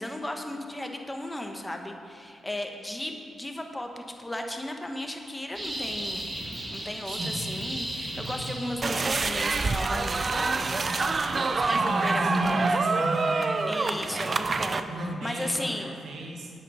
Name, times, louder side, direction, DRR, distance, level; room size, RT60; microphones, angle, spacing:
voice 1, 0.0-6.3 6.7-10.5 10.9-12.7 13.6-15.9, left 1 dB, 15° left, 3 dB, 1.3 m, -35 dB
sound 1, 5.6-9.2, right 1 dB, 20° right, 2.3 m, -35 dB
voice 2, 7.0-7.4 8.1-8.5 11.5-13.6 14.8-16.5, right 1 dB, 75° right, 0 dB, 1.8 m, -33 dB
sound 2, 8.8-14.8, right 3 dB, 40° right, 0.5 m, -26 dB
8.9 x 8.5 x 5.5 m, 2.6 s
cardioid pair, 80°, 0 cm